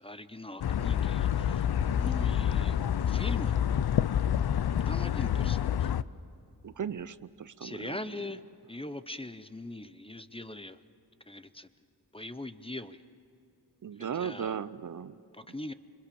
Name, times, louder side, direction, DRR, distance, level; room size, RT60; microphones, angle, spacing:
voice 1, 0.0-1.7 1.9-2.8 3.1-3.6 4.9-5.9 7.6-8.4 8.7-10.8 11.3-11.7 12.1-13.0 14.1-14.6 15.3-15.7, left 2 dB, 15° left, 12 dB, 0.6 m, -41 dB
sound 1, 0.6-6.0, left 9 dB, 70° left, 0.6 m, -28 dB
voice 2, 6.6-8.0 13.8-15.2, right 7 dB, 50° right, 16 dB, 0.5 m, -36 dB
26.5 x 25.5 x 7.0 m, 2.8 s
wide cardioid pair, 130°, 40 cm